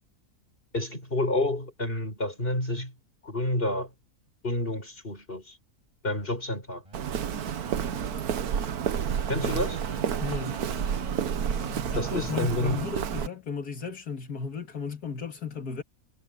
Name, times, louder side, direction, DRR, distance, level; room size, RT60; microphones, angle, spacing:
voice 1, 0.7-2.9 3.2-3.9 4.4-5.6 6.0-6.8 9.3-9.8 11.9-12.9, left 1 dB, 35° left, 6.1 m, -29 dB
sound 1, 6.8-12.8, equal, 20° right, 8.0 m, -44 dB
Walk footsteps, 6.9-13.3, right 8 dB, 75° right, 1.5 m, -30 dB
voice 2, 10.2-10.6 11.9-15.8, left 5 dB, 85° left, 2.6 m, -35 dB
omnidirectional pair, 1.6 m